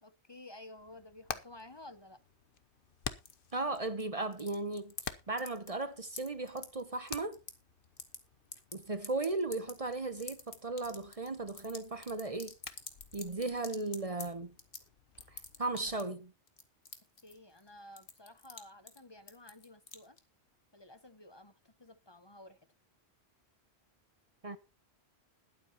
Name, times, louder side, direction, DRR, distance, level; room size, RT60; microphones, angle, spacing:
voice 1, 0.0-2.2 17.2-20.2 20.7-22.6, left 1 dB, 25° left, 0.9 m, -53 dB
Hammer, 0.8-16.0, left 7 dB, 55° left, 1.0 m, -50 dB
sound 1, 3.3-4.0 4.3-5.1 5.4-5.8 6.1-7.5 7.8-8.2 8.5-14.3 14.6-14.9 15.2-16.1 16.5-17.7 18.0-18.6 18.9-19.0 19.3-20.2, left 5 dB, 70° left, 1.9 m, -46 dB
voice 2, 3.5-7.4 8.7-12.5 13.1-14.5 15.3-16.3 24.4-24.6, right 2 dB, 35° right, 0.9 m, -36 dB
21.0 x 8.2 x 2.9 m
omnidirectional pair, 1.1 m